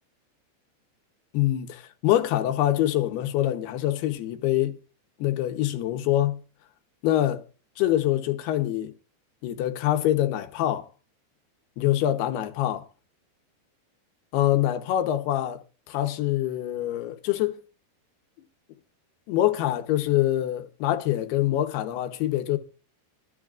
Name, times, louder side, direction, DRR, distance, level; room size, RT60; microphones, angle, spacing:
voice 1, 1.3-4.8 5.2-6.4 7.0-7.4 7.8-8.9 9.4-10.9 11.8-12.8 14.3-15.6 15.9-17.6 19.3-22.6, left 13 dB, 75° left, 2.8 m, -25 dB
24.5 x 9.8 x 2.4 m
omnidirectional pair, 5.1 m